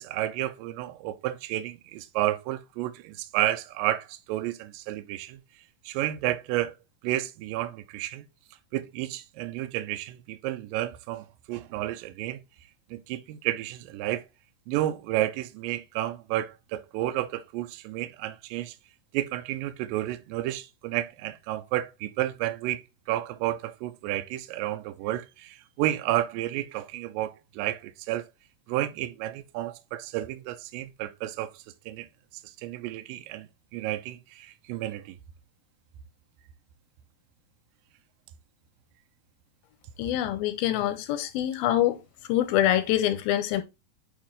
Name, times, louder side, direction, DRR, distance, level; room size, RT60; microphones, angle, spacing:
voice 1, 0.0-5.4 5.9-6.7 7.0-8.2 8.7-12.4 12.9-14.2 14.7-18.8 19.1-28.3 28.7-31.5 31.9-32.1 32.6-35.2, right 14 dB, 80° right, 2.1 m, -31 dB
voice 2, 40.0-42.0 42.3-43.6, left 12 dB, 85° left, 2.4 m, -25 dB
8.7 x 2.9 x 3.7 m
omnidirectional pair, 4.3 m